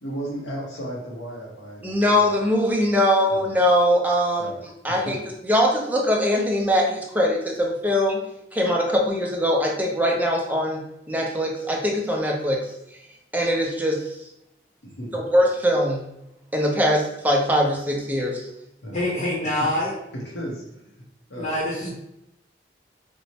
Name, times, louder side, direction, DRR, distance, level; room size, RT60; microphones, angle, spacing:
voice 1, 0.0-2.3 3.3-3.4 4.4-4.6 4.9-5.1 14.8-15.2 18.8-19.0 19.4-19.7 20.1-20.9 21.3-21.6, right 1 dB, 80° left, -3 dB, 0.8 m, -35 dB
voice 2, 1.8-4.5 4.8-5.2 5.5-8.2 8.5-10.8 11.1-12.7 13.3-14.1 15.1-16.0 16.5-18.5, equal, 10° right, -1 dB, 0.5 m, -21 dB
voice 3, 18.9-19.9 21.4-21.9, left 1 dB, 45° left, -5 dB, 0.8 m, -25 dB
4.4 x 2.0 x 2.8 m, 0.85 s
head